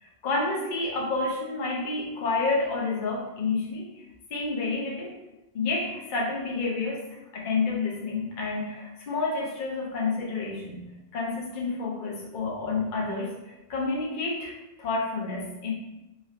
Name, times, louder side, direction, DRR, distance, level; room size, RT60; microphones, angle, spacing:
voice 1, 0.0-3.8 4.3-5.1 5.5-7.0 7.3-10.9 11.1-14.5 14.8-15.7, left 3 dB, 55° left, -2 dB, 0.8 m, -29 dB
3.1 x 2.6 x 2.4 m, 1.0 s
omnidirectional pair, 1.1 m